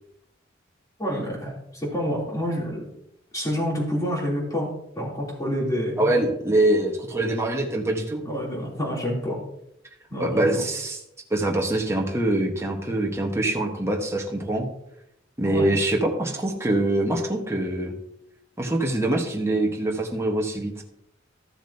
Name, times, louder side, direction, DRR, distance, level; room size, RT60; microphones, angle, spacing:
voice 1, 1.0-2.8 3.3-4.7 4.9-6.1 8.2-9.4 10.1-10.6 15.4-15.7, equal, 20° left, -4 dB, 3.4 m, -28 dB
voice 2, 6.0-8.2 10.2-11.0 11.3-14.7 15.4-17.9 18.6-20.8, right 1 dB, 15° right, 0 dB, 1.4 m, -24 dB
14.0 x 7.2 x 2.9 m, 0.79 s
head